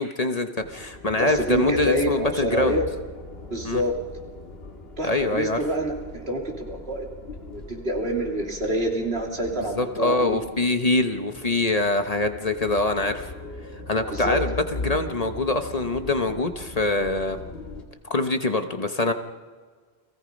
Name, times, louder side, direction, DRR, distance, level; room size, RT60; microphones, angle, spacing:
voice 1, 0.0-2.8 3.6-3.8 5.0-5.6 9.5-13.3 13.9-17.4 18.1-19.1, left 2 dB, 40° left, 7 dB, 1.2 m, -24 dB
sound 1, 0.6-17.8, left 2 dB, 70° left, 2.4 m, -39 dB
voice 2, 1.2-2.8 3.5-3.9 5.0-7.1 7.5-10.4 14.1-14.4, equal, 75° right, 1 dB, 3.3 m, -27 dB
30.0 x 20.5 x 5.3 m, 1.5 s
omnidirectional pair, 1.1 m